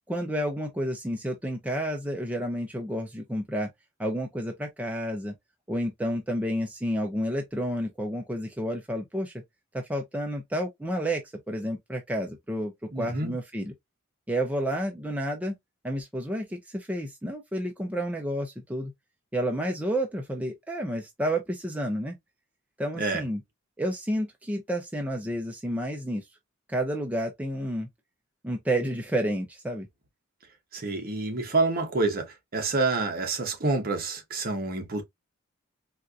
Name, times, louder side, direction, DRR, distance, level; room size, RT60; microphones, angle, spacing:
voice 1, 0.1-3.7 4.0-5.3 5.7-9.3 9.7-11.2 11.5-13.7 14.3-15.6 15.8-18.9 19.3-22.1 22.8-23.4 23.8-26.2 26.7-27.9 28.4-29.9, equal, 5° right, 0.5 m, -30 dB
voice 2, 12.9-13.3 23.0-23.2 30.7-35.0, right 3 dB, 45° right, 0.9 m, -28 dB
4.3 x 2.5 x 2.3 m
head